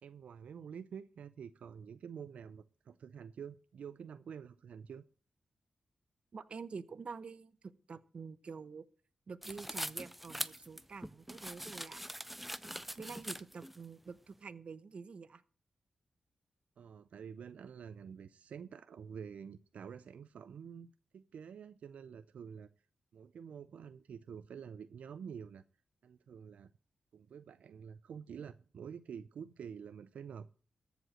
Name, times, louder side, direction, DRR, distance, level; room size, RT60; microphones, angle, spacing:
voice 1, 0.0-5.0 16.8-22.7 23.1-25.6 26.0-26.7 27.1-30.6, right 7 dB, 80° right, 13 dB, 0.5 m, -48 dB
voice 2, 6.3-8.8 9.3-12.0 13.0-15.4, right 5 dB, 55° right, 15 dB, 0.8 m, -47 dB
sound 1, 9.4-13.8, right 1 dB, 5° right, 0.6 m, -42 dB
14.0 x 5.2 x 7.6 m, 0.41 s
cardioid pair, 80°, 2 cm